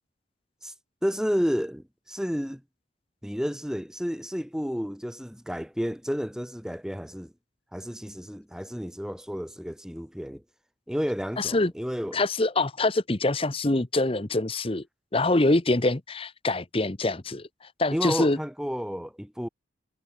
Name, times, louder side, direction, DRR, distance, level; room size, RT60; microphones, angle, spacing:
voice 1, 1.0-2.6 3.2-7.3 7.7-10.4 10.9-12.2 17.9-19.5, equal, 5° right, 2.5 m, -31 dB
voice 2, 11.4-11.7 12.1-14.8 15.1-17.5 17.8-18.4, left 2 dB, 30° left, 0.9 m, -24 dB
head